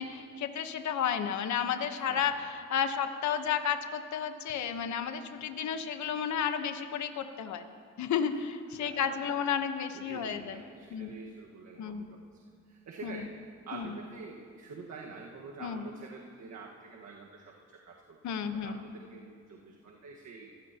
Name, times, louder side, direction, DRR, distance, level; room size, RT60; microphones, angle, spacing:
voice 1, 0.0-7.6 8.0-10.6 10.9-11.1 11.8-12.1 13.0-13.2 13.7-14.0 15.6-15.8 18.2-18.8, left 7 dB, 70° left, 7 dB, 1.2 m, -32 dB
voice 2, 1.9-2.3 8.8-8.9 9.9-13.3 13.7-20.5, right 4 dB, 65° right, -1 dB, 1.7 m, -47 dB
27.5 x 16.0 x 3.0 m, 2.3 s
cardioid pair, 90°, 30 cm